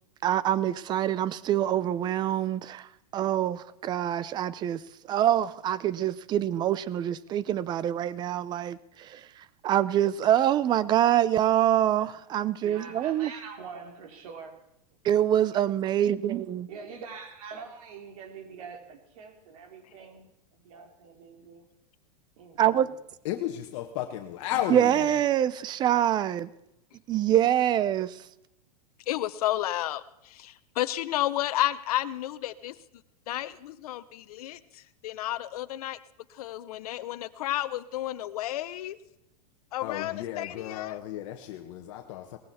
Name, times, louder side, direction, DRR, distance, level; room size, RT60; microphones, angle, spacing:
voice 1, 0.2-4.8 5.1-9.3 9.6-13.3 15.0-16.7 22.6-22.9 24.7-26.5 27.1-28.2, right 11 dB, 20° right, 0.6 m, -25 dB
voice 2, 12.6-14.6 16.7-21.7 22.4-22.9, right 5 dB, 60° right, 3.2 m, -44 dB
voice 3, 23.2-25.2 39.8-42.4, left 12 dB, 50° left, 1.4 m, -34 dB
voice 4, 29.1-32.8 33.3-36.0 36.3-39.0 39.7-41.0, left 14 dB, 65° left, 1.0 m, -32 dB
19.0 x 14.5 x 4.3 m
supercardioid pair, 145°, 20 cm